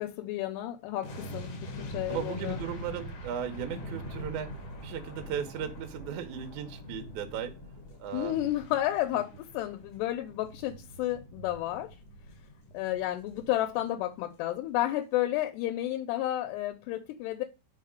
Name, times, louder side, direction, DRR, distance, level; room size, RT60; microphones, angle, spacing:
voice 1, 0.0-2.6 8.1-12.0 12.7-17.4, left 14 dB, 90° left, 2.8 m, -31 dB
sound 1, 1.0-14.2 14.4-14.6, left 1 dB, 70° left, 1.4 m, -44 dB
voice 2, 2.1-4.5 4.8-7.6 8.0-8.4 9.1-9.2, right 8 dB, 75° right, 1.8 m, -36 dB
5.7 x 3.5 x 5.1 m
omnidirectional pair, 4.8 m